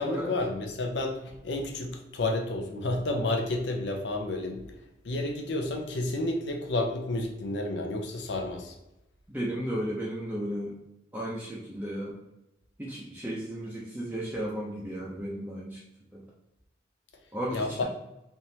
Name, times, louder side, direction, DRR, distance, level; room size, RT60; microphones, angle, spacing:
voice 1, 0.0-4.6 5.0-8.7 17.5-17.8, left 2 dB, 75° left, 3 dB, 0.6 m, -31 dB
voice 2, 9.3-10.7 11.1-12.2 12.8-15.8 16.1-16.2 17.3-17.8, equal, 10° right, -6 dB, 0.5 m, -34 dB
3.4 x 3.0 x 2.7 m, 0.91 s
head